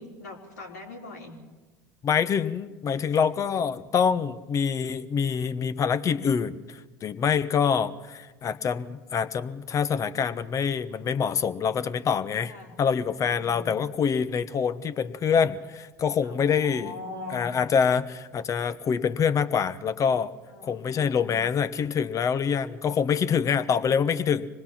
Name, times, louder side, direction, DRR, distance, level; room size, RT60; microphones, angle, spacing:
voice 1, 0.0-1.4 3.5-3.7 12.4-12.8 13.2-13.8 16.2-17.5 20.5-21.4, left 2 dB, 85° left, 0 dB, 3.6 m, -42 dB
voice 2, 2.0-12.5 12.8-16.9 17.3-20.3 20.6-24.5, left 7 dB, 40° left, 13 dB, 1.1 m, -25 dB
25.5 x 20.0 x 5.9 m, 1.2 s
hypercardioid pair, 75°, 9 cm